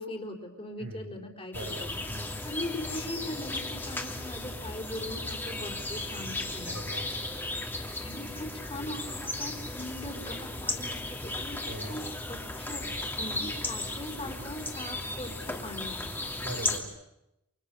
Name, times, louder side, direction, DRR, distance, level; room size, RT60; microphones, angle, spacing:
voice 1, 0.0-2.0 2.4-6.7 8.0-11.6 11.9-16.1, left 1 dB, 25° left, 2 dB, 4.2 m, -40 dB
voice 2, 0.8-1.2 1.5-2.4 6.7-7.1 11.6-12.0 16.4-16.9, right 1 dB, 55° right, 5 dB, 5.5 m, -40 dB
sound 1, 1.5-16.8, left 2 dB, 10° left, 2.8 m, -35 dB
30.0 x 28.0 x 6.9 m, 0.89 s
head